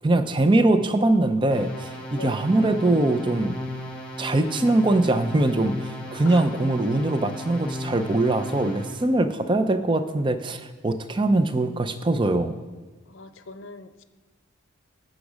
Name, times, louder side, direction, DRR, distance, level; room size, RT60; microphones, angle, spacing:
voice 1, 0.0-3.6 4.2-12.6, right 2 dB, 20° right, 10 dB, 0.5 m, -22 dB
sound 1, 1.5-9.1, left 1 dB, 5° left, 1.6 m, -35 dB
voice 2, 13.1-14.0, left 3 dB, 65° left, 10 dB, 0.7 m, -40 dB
14.5 x 6.2 x 5.0 m, 1.3 s
head